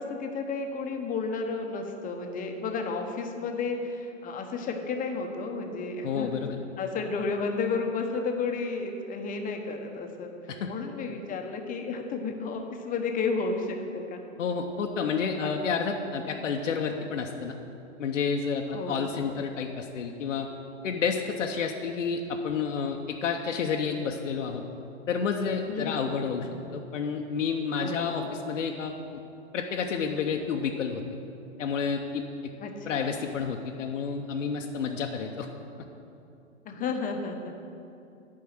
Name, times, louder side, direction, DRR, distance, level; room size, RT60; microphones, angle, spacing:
voice 1, 0.0-6.3 6.8-10.3 10.7-14.2 15.4-15.5 18.7-19.4 25.7-26.4 27.8-28.3 32.6-33.1 36.6-37.6, left 4 dB, 20° left, 4 dB, 1.0 m, -32 dB
voice 2, 6.0-6.7 10.5-10.7 14.4-17.5 18.0-20.5 20.8-24.6 25.1-29.2 29.5-31.0 31.6-32.5 32.9-35.5, left 6 dB, 85° left, 2 dB, 0.9 m, -30 dB
8.5 x 5.5 x 7.9 m, 2.6 s
hypercardioid pair, 120°, 37 cm